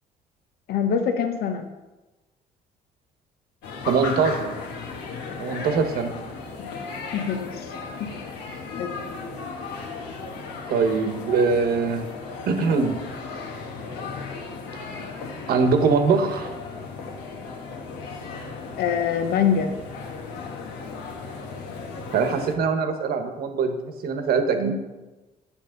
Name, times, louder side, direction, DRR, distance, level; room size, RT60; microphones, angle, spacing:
voice 1, 0.7-1.7 6.6-6.8 7.1-7.7 8.0-8.1 8.8-8.9 18.8-19.7, left 7 dB, 70° left, 6 dB, 0.8 m, -24 dB
sound 1, 3.6-22.6, left 4 dB, 85° left, 1.3 m, -36 dB
voice 2, 3.9-4.5 5.4-6.1 10.7-12.1 12.5-13.0 15.5-16.5 22.1-23.8 24.0-24.7, right 5 dB, 65° right, 6 dB, 1.2 m, -22 dB
8.8 x 7.1 x 3.9 m, 1.1 s
cardioid pair, 110°, 17 cm